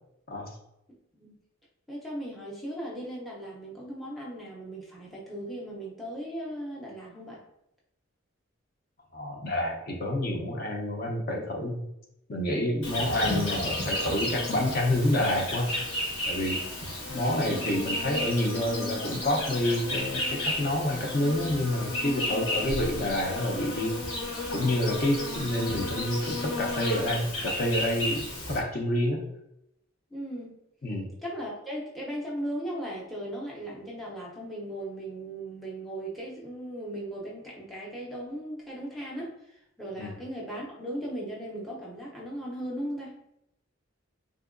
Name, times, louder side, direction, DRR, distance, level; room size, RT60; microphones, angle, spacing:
voice 1, 1.9-7.4 30.1-30.5 31.2-43.2, right 1 dB, ahead, -4 dB, 0.6 m, -37 dB
voice 2, 9.1-11.8 12.3-15.7 16.3-16.6 17.1-24.0 24.5-29.2 30.8-31.1 40.0-40.1, left 1 dB, 45° left, 0 dB, 0.6 m, -28 dB
Insect, 12.8-28.6, left 1 dB, 85° left, 1.2 m, -33 dB
3.6 x 2.7 x 2.5 m, 0.81 s
head